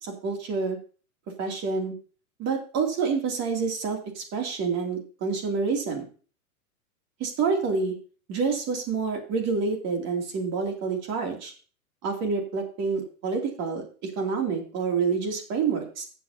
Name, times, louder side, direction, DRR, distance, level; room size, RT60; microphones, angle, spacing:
voice 1, 0.0-0.8 1.4-2.0 2.4-6.0 7.2-7.9 8.3-11.5 12.0-16.0, right 5 dB, 35° right, 2 dB, 2.9 m, -28 dB
14.0 x 8.0 x 2.8 m, 0.39 s
hypercardioid pair, 120°, 45 cm